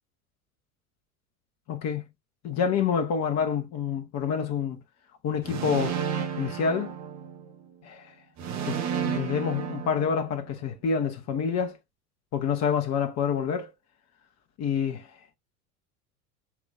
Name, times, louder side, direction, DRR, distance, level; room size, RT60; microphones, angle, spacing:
voice 1, 1.7-2.1 2.4-4.8 5.2-6.0 6.4-6.9 7.8-8.1 8.6-11.8 12.3-13.7 14.6-15.1, left 6 dB, 35° left, 1.3 m, -27 dB
sound 1, 5.4-7.6 8.4-10.6, right 8 dB, 40° right, 1.2 m, -32 dB
7.2 x 2.9 x 2.5 m
figure-of-eight pair, 80°, 44 cm